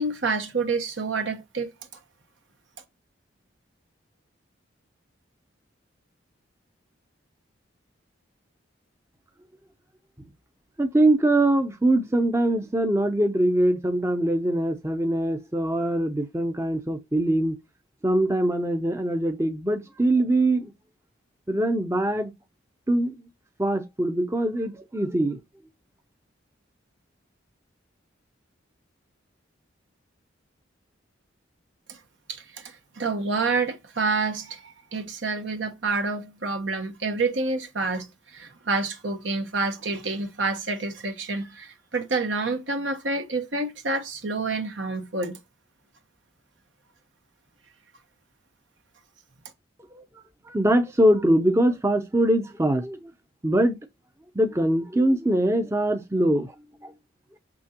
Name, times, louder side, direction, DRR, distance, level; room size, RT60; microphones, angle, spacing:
voice 1, 0.0-1.7 31.9-32.0 32.3-45.4, right 3 dB, 70° right, 1.1 m, -28 dB
voice 2, 10.8-17.6 18.0-20.7 21.5-22.3 22.9-23.2 23.6-25.4 49.9-50.0 50.4-53.1 53.4-53.8 54.3-56.5 56.8-56.9, right 1 dB, 15° right, 0.6 m, -23 dB
6.6 x 6.1 x 2.9 m
head